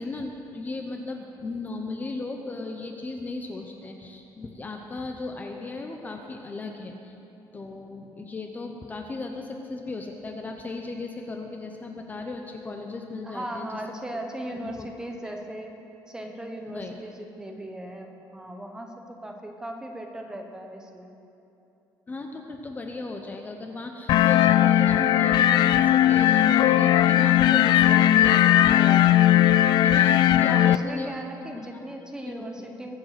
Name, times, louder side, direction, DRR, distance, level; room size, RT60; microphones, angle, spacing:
voice 1, 0.0-7.1 7.5-13.8 14.6-14.9 15.2-15.3 16.7-16.9 22.1-29.2 29.8-31.1 31.5-31.8 32.3-32.9, left 3 dB, 20° left, 3 dB, 0.8 m, -36 dB
voice 2, 13.2-15.7 16.1-21.1 29.9-30.2 30.5-32.9, right 1 dB, 10° right, 3 dB, 1.1 m, -38 dB
sound 1, 24.1-30.8, left 12 dB, 65° left, 0.4 m, -18 dB
22.0 x 7.6 x 5.9 m, 2.8 s
cardioid pair, 165°, 8 cm